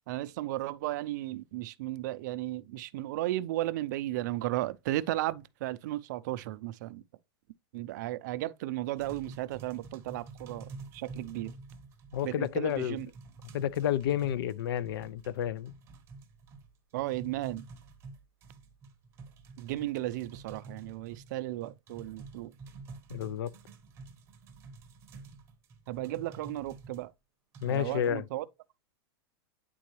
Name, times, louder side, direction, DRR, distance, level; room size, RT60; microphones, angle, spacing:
voice 1, 0.1-7.0 7.7-11.5 12.2-13.1 16.9-17.6 19.6-22.5 25.9-27.1 27.7-28.4, right 15 dB, 45° right, 0.4 m, -35 dB
sound 1, 9.0-27.0 27.5-28.1, right 4 dB, 20° right, 0.8 m, -49 dB
voice 2, 12.1-13.0 13.5-15.7 23.1-23.5 27.6-28.3, left 10 dB, 70° left, 0.5 m, -30 dB
9.3 x 3.8 x 3.0 m
supercardioid pair, 165°, 13 cm